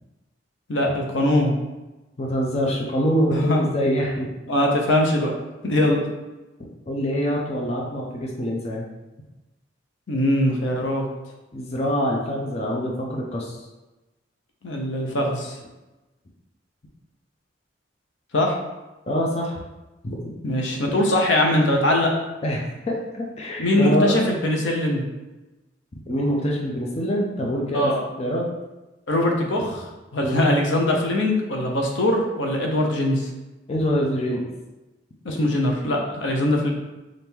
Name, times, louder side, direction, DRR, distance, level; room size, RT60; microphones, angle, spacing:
voice 1, 0.7-1.5 3.3-3.7 4.5-5.3 5.6-6.0 10.1-11.0 14.6-15.6 18.3-18.6 20.4-22.1 23.6-25.0 27.7-28.0 29.1-33.3 35.2-36.7, left 1 dB, 80° left, 1 dB, 0.7 m, -21 dB
voice 2, 2.2-4.3 6.9-8.9 11.5-13.6 19.1-19.6 20.0-20.2 22.4-24.2 26.1-27.9 28.2-28.5 30.2-30.4 33.7-34.5, equal, 35° left, -2 dB, 0.5 m, -25 dB
4.4 x 2.5 x 3.5 m, 1.1 s
head